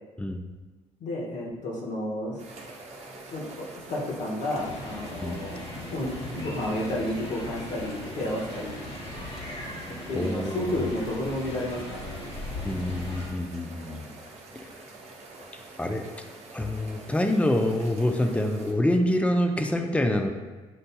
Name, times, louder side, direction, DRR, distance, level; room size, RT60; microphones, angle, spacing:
voice 1, 1.0-2.4 3.1-5.6 5.9-8.8 10.1-12.2, left 1 dB, 60° left, -2 dB, 1.2 m, -31 dB
sound 1, 2.4-18.7, right 2 dB, 50° right, 0.8 m, -46 dB
sound 2, 4.5-13.3, left 1 dB, 45° left, 1.4 m, -38 dB
voice 2, 10.1-10.9 12.6-14.1 15.5-16.1 16.5-20.3, left 1 dB, 10° left, 5 dB, 0.5 m, -26 dB
7.5 x 2.6 x 2.2 m, 1.3 s
supercardioid pair, 70°, 14 cm